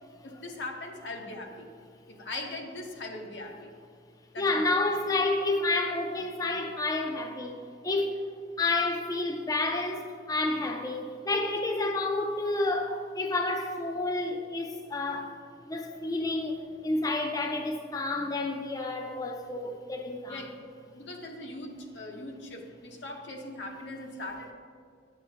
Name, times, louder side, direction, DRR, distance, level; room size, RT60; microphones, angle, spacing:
voice 1, 0.2-1.7 2.1-3.7 4.3-4.6 20.3-20.5 20.9-24.5, left 2 dB, 85° left, 2 dB, 0.9 m, -40 dB
voice 2, 4.4-8.2 8.6-15.3 15.6-20.5, left 2 dB, 20° left, 4 dB, 0.4 m, -30 dB
8.7 x 8.4 x 2.8 m, 2.2 s
head